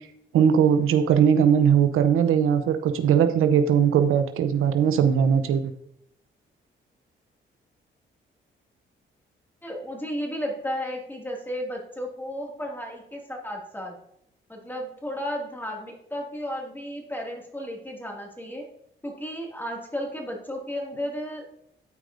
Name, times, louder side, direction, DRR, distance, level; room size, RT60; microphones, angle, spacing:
voice 1, 0.3-5.7, right 8 dB, 85° right, 9 dB, 0.6 m, -20 dB
voice 2, 9.6-13.9 14.5-18.7 19.0-21.5, equal, 10° left, 0 dB, 2.1 m, -33 dB
12.5 x 4.7 x 2.6 m, 0.73 s
cardioid pair, 65°, 21 cm